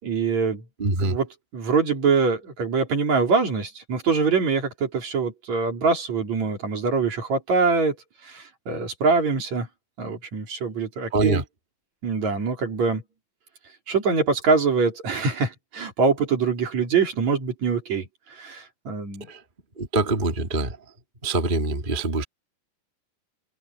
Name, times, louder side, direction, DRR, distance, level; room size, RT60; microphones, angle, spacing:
voice 1, 0.0-0.6 1.0-8.0 8.2-9.7 10.0-11.4 12.0-13.0 13.9-19.3, right 5 dB, 50° right, 4.8 m, -24 dB
voice 2, 0.8-1.2 11.1-11.4 19.3-19.4 19.8-20.8 21.2-22.2, right 2 dB, 20° right, 1.7 m, -24 dB
omnidirectional pair, 4.2 m